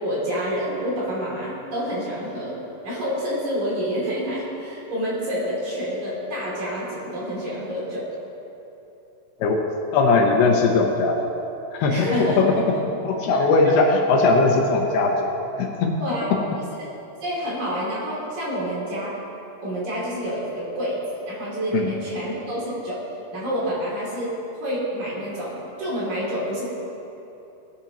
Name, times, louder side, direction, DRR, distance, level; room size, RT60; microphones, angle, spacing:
voice 1, 0.0-2.6 2.8-8.1 11.9-12.4 16.0-16.3 17.2-19.2 19.6-23.0 23.3-26.6, equal, 50° right, -7 dB, 3.8 m, -28 dB
voice 2, 9.9-11.2 11.7-12.6 12.9-15.3 15.6-16.0 21.7-21.9, left 3 dB, 75° left, 1 dB, 2.7 m, -19 dB
18.5 x 10.0 x 3.0 m, 2.9 s
omnidirectional pair, 4.9 m